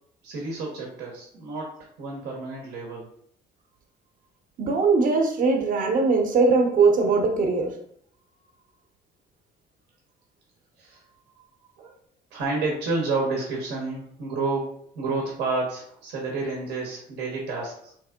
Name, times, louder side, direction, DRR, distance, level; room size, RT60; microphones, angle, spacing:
voice 1, 0.2-3.1 10.8-11.0 11.8-11.9 12.3-17.9, right 3 dB, 85° right, -1 dB, 0.9 m, -30 dB
voice 2, 4.6-7.7, right 4 dB, 50° right, 3 dB, 0.8 m, -20 dB
3.6 x 3.1 x 2.2 m, 0.67 s
cardioid pair, 110°, 17 cm